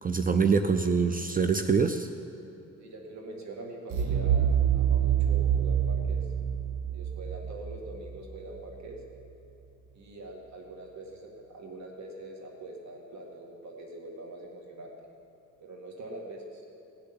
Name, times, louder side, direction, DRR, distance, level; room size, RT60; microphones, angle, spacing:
voice 1, 0.0-2.1, right 5 dB, 30° right, 8 dB, 0.6 m, -25 dB
voice 2, 2.8-6.3 6.9-9.0 9.9-14.9 15.6-16.6, right 2 dB, 65° right, 0 dB, 2.3 m, -43 dB
sound 1, 3.9-8.8, right 9 dB, 90° right, 1.0 m, -27 dB
18.0 x 6.8 x 9.7 m, 2.9 s
cardioid pair, 110°, 30 cm